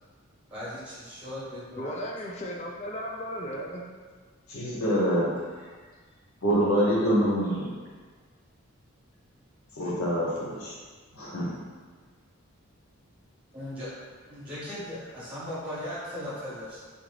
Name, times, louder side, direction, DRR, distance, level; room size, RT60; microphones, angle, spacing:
voice 1, 0.5-1.9 13.5-13.9 14.3-16.8, left 1 dB, 5° right, -10 dB, 0.9 m, -38 dB
voice 2, 1.8-3.9, equal, 30° left, -1 dB, 0.4 m, -35 dB
voice 3, 4.5-5.3 6.4-7.7 9.8-10.7 11.1-11.5, equal, 75° left, -5 dB, 0.9 m, -25 dB
3.6 x 2.5 x 3.2 m, 1.5 s
head